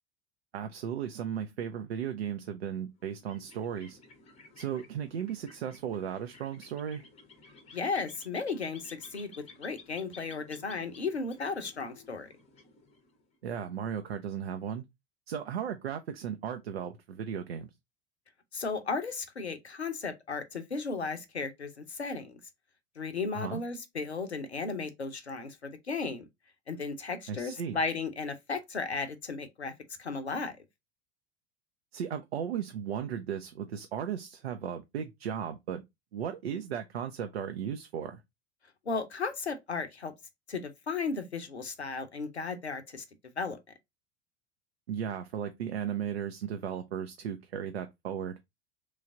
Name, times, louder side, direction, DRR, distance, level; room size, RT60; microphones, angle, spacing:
voice 1, 0.5-4.0 4.6-7.0 13.4-14.8 15.3-17.7 23.3-23.6 27.3-27.8 31.9-35.8 36.1-38.2 44.9-48.4, right 8 dB, 70° right, 0.5 m, -36 dB
sound 1, 3.0-13.4, left 3 dB, 20° left, 0.7 m, -55 dB
voice 2, 7.7-9.3 9.6-12.3 18.5-22.4 23.0-26.3 26.7-29.7 30.0-30.5 38.9-40.1 40.5-43.0 43.4-43.6, left 4 dB, 85° left, 0.6 m, -35 dB
3.1 x 2.3 x 3.6 m
figure-of-eight pair, 80°, 32 cm